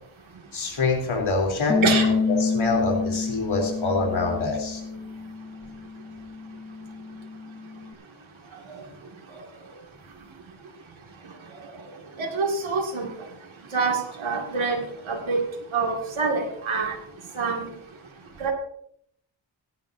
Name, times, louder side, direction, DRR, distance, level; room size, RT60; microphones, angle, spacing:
voice 1, 0.5-4.8, left 3 dB, 90° left, 1 dB, 3.6 m, -26 dB
Bass guitar, 1.7-7.9, left 4 dB, 5° left, 1.2 m, -28 dB
voice 2, 12.2-13.1 13.7-15.4 15.7-16.9 17.3-17.7 18.4-18.5, right 4 dB, 85° right, 1 dB, 2.3 m, -26 dB
18.0 x 11.0 x 2.7 m, 0.69 s
wide cardioid pair, 80°, 46 cm